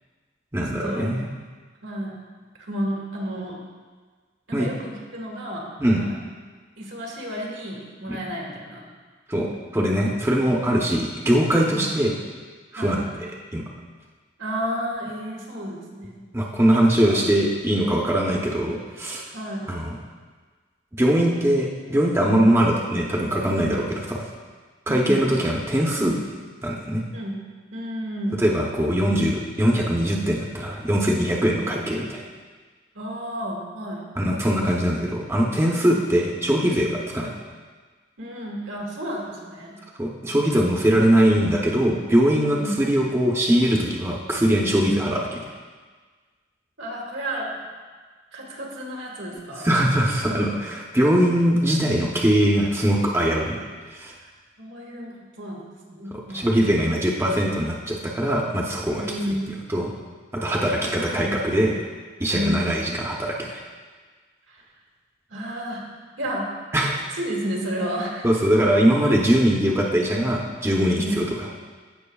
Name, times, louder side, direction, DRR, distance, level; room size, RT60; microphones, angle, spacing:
voice 1, 0.5-1.3 4.5-4.7 5.8-6.0 8.1-8.2 9.3-12.1 12.7-13.0 13.5-13.6 16.3-19.2 19.7-19.9 21.0-24.2 24.9-26.2 26.6-27.0 28.4-32.2 34.2-37.3 40.0-45.2 49.6-53.6 53.9-54.1 56.3-59.0 59.7-59.9 60.3-61.7 62.2-63.6 66.7-66.9 68.2-71.2, equal, 15° right, -2 dB, 0.7 m, -21 dB
voice 2, 1.8-2.2 2.6-3.6 4.5-5.7 5.9-6.2 6.8-8.8 11.7-11.9 12.7-13.0 14.4-16.3 16.7-17.3 19.3-19.7 24.8-25.4 27.1-27.4 27.7-28.4 32.9-34.0 35.9-36.0 38.2-39.8 42.5-42.8 44.8-45.0 46.8-47.5 48.3-49.7 54.2-54.3 54.6-56.9 59.0-59.5 60.8-61.4 62.3-62.8 64.5-64.6 65.3-65.9 66.2-66.5 67.1-68.3 70.9-71.3, equal, 80° right, -1 dB, 1.8 m, -31 dB
15.5 x 6.0 x 2.3 m, 1.5 s
head